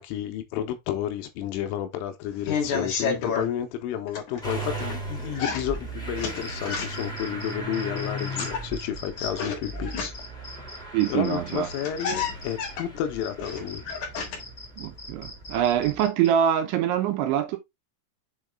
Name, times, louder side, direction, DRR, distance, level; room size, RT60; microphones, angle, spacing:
voice 1, 0.0-10.6 11.1-13.8, left 10 dB, 85° left, 3.5 m, -31 dB
sound 1, 2.2-3.5 4.1-5.0 5.4-7.2 8.1-10.4 11.3-11.4 11.6-14.6 14.9-15.6, left 5 dB, 55° left, 2.2 m, -32 dB
Motor vehicle (road) / Engine starting, 4.4-16.0, right 2 dB, ahead, 0.8 m, -37 dB
sound 2, 6.2-12.7 13.2-16.3, left 2 dB, 35° left, 2.3 m, -43 dB
voice 2, 10.9-11.7 14.8-17.6, right 10 dB, 80° right, 3.0 m, -24 dB
7.4 x 4.0 x 3.6 m
omnidirectional pair, 5.7 m